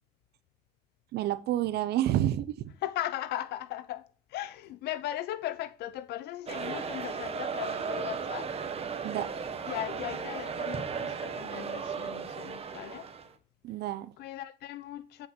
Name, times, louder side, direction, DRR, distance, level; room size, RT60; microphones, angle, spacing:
voice 1, 1.1-2.5 9.0-9.3 13.6-14.1, right 12 dB, 75° right, 0.8 m, -29 dB
voice 2, 2.8-8.5 9.6-13.1 14.2-15.3, left 13 dB, 75° left, 1.0 m, -38 dB
sound 1, 6.5-13.3, right 6 dB, 35° right, 1.5 m, -35 dB
8.5 x 7.0 x 4.4 m
cardioid pair, 110°, 17 cm